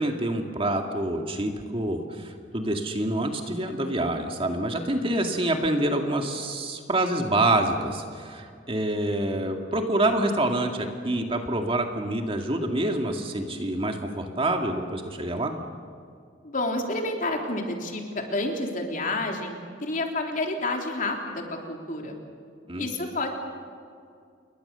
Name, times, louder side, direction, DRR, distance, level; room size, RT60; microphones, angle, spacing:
voice 1, 0.0-15.5 22.7-22.9, right 1 dB, 30° right, 4 dB, 2.2 m, -27 dB
voice 2, 16.4-22.2 22.8-23.3, left 2 dB, 45° left, 2 dB, 3.5 m, -29 dB
28.5 x 22.0 x 6.9 m, 2.3 s
head